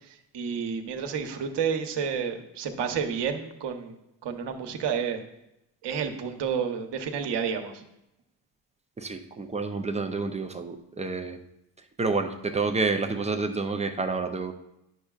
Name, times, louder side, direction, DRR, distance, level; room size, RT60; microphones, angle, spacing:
voice 1, 0.0-4.0 4.2-5.2 5.8-7.8, right 7 dB, 55° right, 5 dB, 1.0 m, -30 dB
voice 2, 9.0-11.4 12.0-14.5, right 3 dB, 15° right, 6 dB, 0.3 m, -29 dB
10.0 x 6.5 x 2.4 m, 0.86 s
cardioid pair, 115°, 48 cm